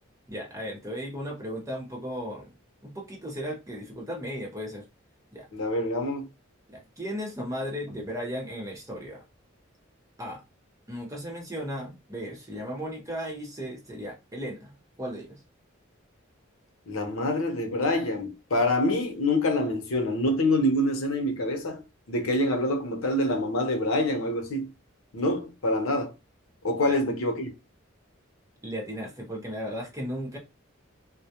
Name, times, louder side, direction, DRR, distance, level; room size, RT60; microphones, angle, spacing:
voice 1, 0.3-2.5 2.8-4.8 5.3-5.5 6.7-9.2 10.2-10.4 10.9-15.4 26.9-27.0 28.6-30.4, equal, 15° right, 0.7 m, -36 dB
voice 2, 5.5-6.3 16.9-21.8 22.1-24.7 25.1-26.1 26.6-27.5, left 1 dB, 85° left, 0.7 m, -26 dB
2.2 x 2.1 x 2.8 m
head